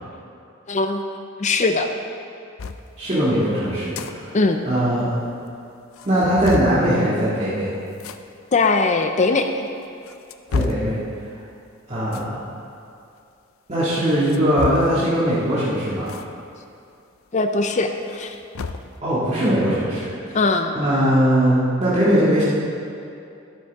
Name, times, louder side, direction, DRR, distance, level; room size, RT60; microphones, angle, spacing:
voice 1, 0.7-1.1 1.4-1.9 4.3-4.6 8.5-9.7 17.3-18.3 20.3-20.7, left 3 dB, 35° left, 6 dB, 0.5 m, -20 dB
sound 1, 2.6-2.8 3.7-4.1 4.5-4.6 4.8-4.9 5.5-5.6 5.9-6.8 7.9-8.2 9.0-9.1 9.8-10.9 12.1-12.3 14.1-15.1 16.1-16.3 16.6-16.7 18.0-18.9, left 4 dB, 90° left, 0.5 m, -29 dB
voice 2, 3.0-4.3 4.6-5.1 6.0-7.7 10.5-11.0 11.9-12.4 13.7-16.1 19.0-20.4 20.7-22.4, equal, 35° right, -10 dB, 2.0 m, -20 dB
12.5 x 11.5 x 3.6 m, 2.5 s
head